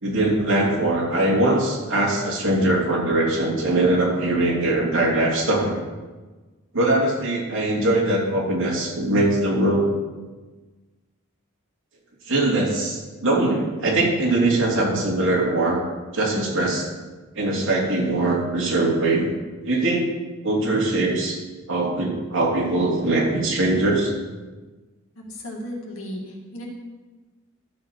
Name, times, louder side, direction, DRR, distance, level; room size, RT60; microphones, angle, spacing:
voice 1, 0.0-5.8 6.7-9.9 12.3-15.8 16.1-16.9 17.3-19.3 19.6-20.1 20.4-21.4 21.7-24.1, right 2 dB, 65° right, -3 dB, 3.2 m, -21 dB
voice 2, 25.2-26.6, equal, 75° left, -1 dB, 2.4 m, -35 dB
13.0 x 7.6 x 4.6 m, 1.3 s
head